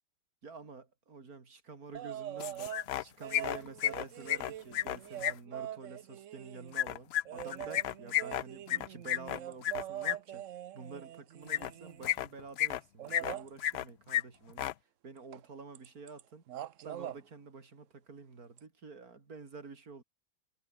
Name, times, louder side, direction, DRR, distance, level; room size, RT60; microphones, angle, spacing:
voice 1, 0.4-10.5 10.7-14.7 15.0-16.4 16.8-20.0, right 4 dB, 80° right, 3.4 m, -49 dB
sound 1, 1.9-2.8 3.2-6.7 7.2-12.1 13.0-13.5 15.3-15.4 15.7-16.2 16.5-17.2 18.6-18.7, right 11 dB, 65° right, 1.0 m, -43 dB
sound 2, 2.4-3.0 3.3-5.3 6.7-10.1 11.5-11.7 12.0-12.8 13.1-13.8 14.1-14.2 14.5-14.7, left 12 dB, 65° left, 0.6 m, -32 dB
omnidirectional pair, 1.5 m